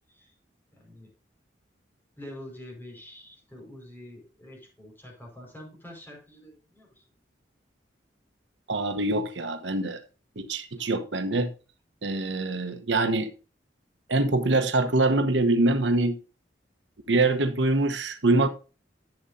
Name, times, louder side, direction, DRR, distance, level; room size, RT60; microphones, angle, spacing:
voice 1, 0.7-1.1 2.2-7.0 10.8-10.9, left 1 dB, 10° left, 4.9 m, -46 dB
voice 2, 8.7-10.0 10.4-11.5 12.0-13.3 14.1-16.2 17.1-18.5, right 2 dB, 80° right, 1.1 m, -24 dB
12.0 x 7.7 x 2.7 m
head